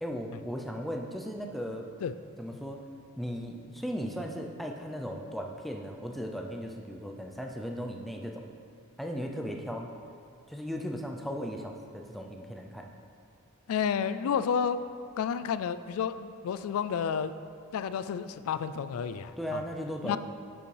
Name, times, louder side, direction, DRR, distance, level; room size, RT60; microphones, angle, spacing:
voice 1, 0.0-1.9 2.4-2.8 3.2-8.5 9.0-9.9 10.5-12.9 19.4-20.2, equal, ahead, 2 dB, 0.4 m, -37 dB
voice 2, 13.7-14.8 15.2-17.4 17.7-19.6 20.0-20.2, left 7 dB, 70° left, 14 dB, 0.3 m, -30 dB
7.7 x 6.9 x 3.3 m, 2.3 s
head